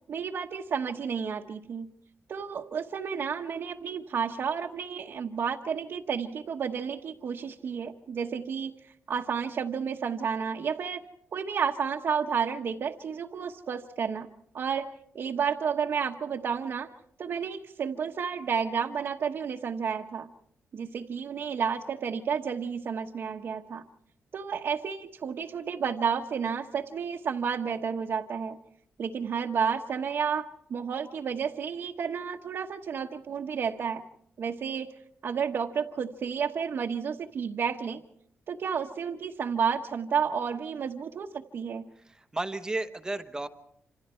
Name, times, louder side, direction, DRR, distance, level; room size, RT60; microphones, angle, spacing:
voice 1, 0.1-1.9 2.3-11.0 11.3-14.3 14.5-14.9 15.1-16.9 17.2-20.3 20.7-23.8 24.3-28.6 29.0-34.0 34.4-34.9 35.2-38.0 38.5-41.8, right 6 dB, 50° right, 1 dB, 1.1 m, -31 dB
voice 2, 42.1-43.5, right 2 dB, 15° right, 9 dB, 1.0 m, -33 dB
27.5 x 27.0 x 4.4 m, 0.69 s
wide cardioid pair, 175°, 5 cm